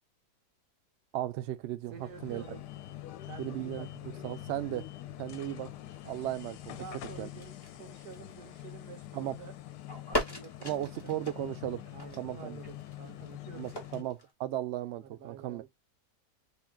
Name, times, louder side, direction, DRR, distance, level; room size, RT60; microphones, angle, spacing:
voice 1, 1.1-2.4 3.4-4.9 5.2-5.7 6.0-6.8 7.2-7.3 9.1-9.4 10.6-11.8 12.2-12.6 13.6-15.6, right 13 dB, 90° right, 0.6 m, -36 dB
sound 1, 1.9-14.0, left 14 dB, 85° left, 1.2 m, -45 dB
voice 2, 1.9-2.6 3.2-4.3 6.8-9.5 10.1-11.2 11.9-13.9 15.0-15.7, right 6 dB, 70° right, 1.5 m, -49 dB
sound 2, 6.1-8.6 8.9-9.5 9.8-14.3, left 1 dB, 20° left, 0.8 m, -40 dB
3.6 x 2.3 x 3.6 m
omnidirectional pair, 1.7 m